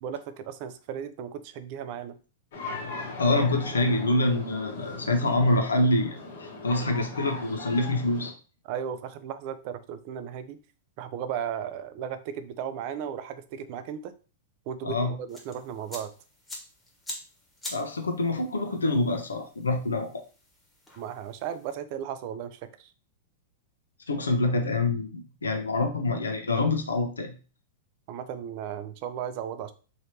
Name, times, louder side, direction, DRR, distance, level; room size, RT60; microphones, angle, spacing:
voice 1, 0.0-2.2 8.7-10.6 11.0-14.1 14.7-16.1 21.0-22.9 28.1-29.7, right 8 dB, 50° right, 11 dB, 0.5 m, -35 dB
sound 1, 2.5-8.3, left 3 dB, 65° left, 1.2 m, -39 dB
voice 2, 3.2-8.3 14.8-15.1 17.7-20.2 24.1-27.3, left 2 dB, 90° left, 5 dB, 0.8 m, -26 dB
sound 2, 15.3-21.8, left 1 dB, 10° left, 1.2 m, -45 dB
3.1 x 2.9 x 2.8 m, 0.36 s
hypercardioid pair, 105°, 0 cm